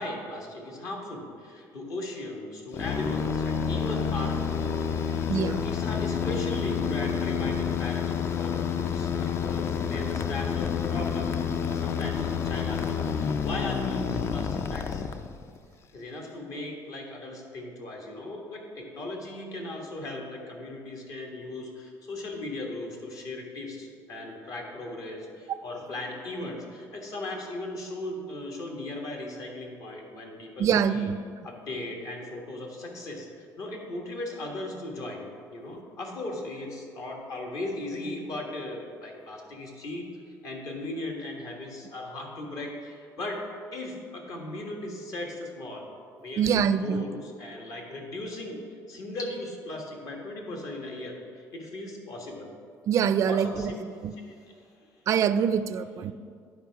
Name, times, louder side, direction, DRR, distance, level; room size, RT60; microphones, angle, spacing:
voice 1, 0.0-15.1 15.9-31.1 31.4-35.2 35.5-43.4 43.7-45.9 46.2-48.6 48.9-52.5 53.2-53.8 54.1-54.4, left 2 dB, 55° left, 0 dB, 1.5 m, -37 dB
sound 1, 2.7-15.6, left 7 dB, 40° left, 0.4 m, -29 dB
voice 2, 5.3-5.6 25.5-25.6 30.6-31.2 46.4-47.0 52.9-53.7 54.0-54.1 55.1-56.1, right 7 dB, 50° right, 13 dB, 0.3 m, -24 dB
11.0 x 4.8 x 4.6 m, 2.2 s
cardioid pair, 120°, 7 cm